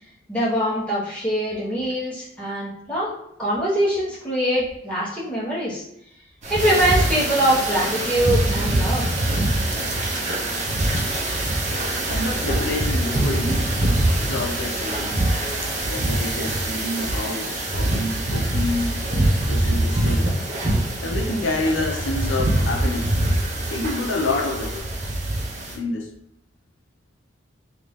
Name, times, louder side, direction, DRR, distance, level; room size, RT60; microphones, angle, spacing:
voice 1, 0.3-3.1 3.4-5.8 6.5-9.1, right 1 dB, 5° left, -8 dB, 0.9 m, -23 dB
sound 1, 6.4-25.8, right 1 dB, 35° right, 0.6 m, -24 dB
voice 2, 12.1-13.8 14.2-15.2 15.8-19.1 19.5-20.3 21.0-23.3 23.7-24.8 25.7-26.1, left 2 dB, 70° left, 1 dB, 0.5 m, -28 dB
2.8 x 2.5 x 3.4 m, 0.78 s
head